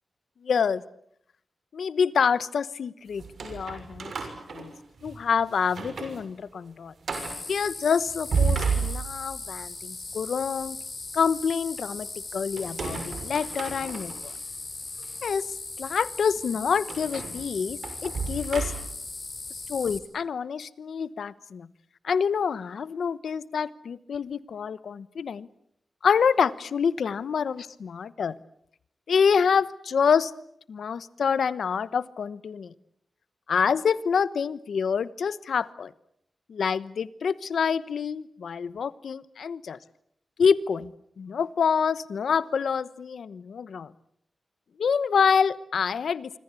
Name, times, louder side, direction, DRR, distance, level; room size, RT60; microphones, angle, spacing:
voice 1, 0.4-0.8 1.7-4.1 4.5-4.7 5.0-6.9 7.5-10.8 11.1-12.1 12.3-14.3 15.2-15.5 15.8-18.7 19.7-21.7 22.0-25.5 26.0-28.4 29.1-30.3 30.7-32.7 33.5-35.9 36.5-39.8 40.4-40.9 41.2-43.9 44.8-46.3, left 6 dB, 90° left, 17 dB, 1.0 m, -26 dB
sound 1, 3.2-5.2 5.6-6.2 6.5-6.6 7.0-7.4 8.1-9.4 12.6-14.3 15.0-15.1 16.9-19.1, right 5 dB, 70° right, 6.2 m, -32 dB
sound 2, 7.1-20.0, left 3 dB, 35° left, 4.4 m, -38 dB
26.0 x 25.5 x 8.4 m, 0.73 s
wide cardioid pair, 105°, 0 cm